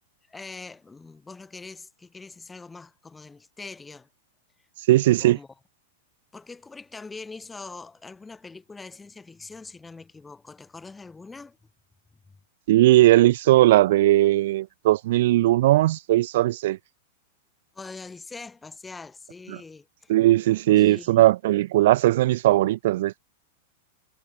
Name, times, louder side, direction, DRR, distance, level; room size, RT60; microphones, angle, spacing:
voice 1, 0.3-4.1 5.2-5.5 6.3-11.6 12.3-12.4 17.7-20.1 20.7-21.3, left 4 dB, 10° left, 5.8 m, -43 dB
voice 2, 4.9-5.4 12.7-16.8 20.1-23.2, right 15 dB, 65° right, 0.3 m, -18 dB
hypercardioid pair, 105°, 0 cm